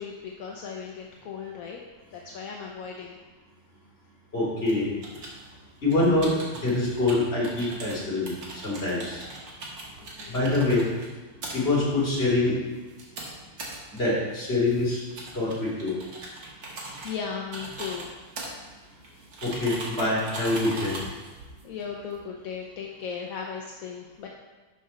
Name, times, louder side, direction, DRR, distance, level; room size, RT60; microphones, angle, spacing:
voice 1, 0.0-1.8 2.1-3.2 10.2-10.5 17.0-18.1 21.6-24.3, left 6 dB, 60° left, 0 dB, 1.0 m, -36 dB
voice 2, 4.3-4.9 5.8-9.2 10.3-10.9 11.5-12.6 13.9-15.0 15.3-15.9 19.4-21.0, left 2 dB, 35° left, -6 dB, 3.0 m, -25 dB
sound 1, 4.6-22.2, right 2 dB, 80° right, 2.3 m, -41 dB
11.5 x 4.9 x 4.2 m, 1.3 s
omnidirectional pair, 2.0 m